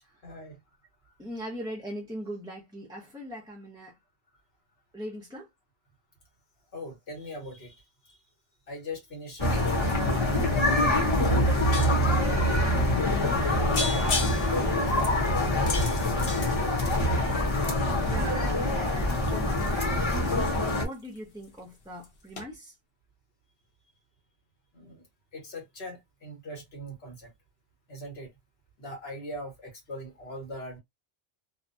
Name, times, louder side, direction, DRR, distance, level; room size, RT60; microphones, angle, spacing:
voice 1, 0.2-0.6 6.7-8.1 8.7-9.6 9.9-11.6 12.7-13.5 14.6-15.5 15.9-16.7 19.5-19.6 24.7-25.0 25.3-27.3 27.9-28.3 28.8-30.8, equal, 90° left, 1.5 m, -41 dB
voice 2, 1.2-3.9 4.9-5.5 18.1-22.7, equal, 5° right, 0.6 m, -40 dB
sound 1, 9.4-20.8, left 1 dB, 30° left, 0.9 m, -25 dB
sound 2, 10.9-11.0 11.2-12.2 12.8-12.9 13.3-13.5 13.7-17.3 17.8-21.2 21.4-21.8 22.0-22.1 22.4-22.5, left 3 dB, 65° left, 1.0 m, -35 dB
2.7 x 2.2 x 2.6 m
omnidirectional pair, 1.0 m